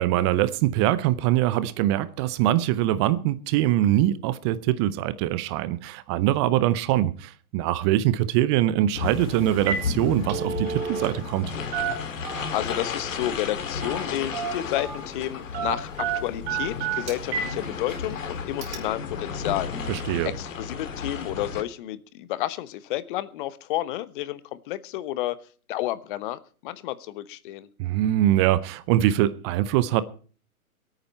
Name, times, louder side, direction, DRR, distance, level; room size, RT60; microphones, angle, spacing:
voice 1, 0.0-11.5 19.9-20.3 27.8-30.0, right 13 dB, 20° right, 0.6 m, -23 dB
sound 1, 8.9-21.6, left 5 dB, 60° left, 2.4 m, -33 dB
Telephone, 9.0-9.2 9.5-9.9 10.1-11.4 11.7-12.7 13.8-14.1 14.3-15.0 15.5-17.5 17.9-18.0 18.6-18.7, right 7 dB, 45° right, 5.4 m, -30 dB
voice 2, 12.5-19.9 20.2-25.4 25.7-27.7, left 14 dB, 35° left, 1.1 m, -31 dB
23.0 x 9.1 x 4.3 m
figure-of-eight pair, 120°, 43 cm